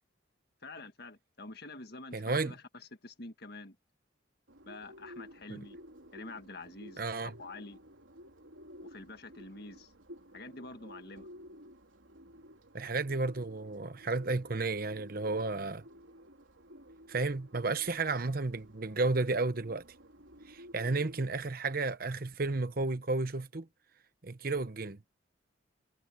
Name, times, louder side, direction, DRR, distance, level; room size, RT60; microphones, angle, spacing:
voice 1, 0.6-2.6 3.0-3.8 4.6-5.8 6.1-7.8 8.8-9.9 10.3-11.3, left 2 dB, 55° left, 1.7 m, -47 dB
voice 2, 2.1-2.5 5.5-5.6 7.0-7.4 12.7-15.8 17.1-19.8 20.5-23.7 24.2-25.0, right 3 dB, 50° right, 0.9 m, -32 dB
Bird, 4.5-21.5, equal, 85° right, 3.5 m, -53 dB
head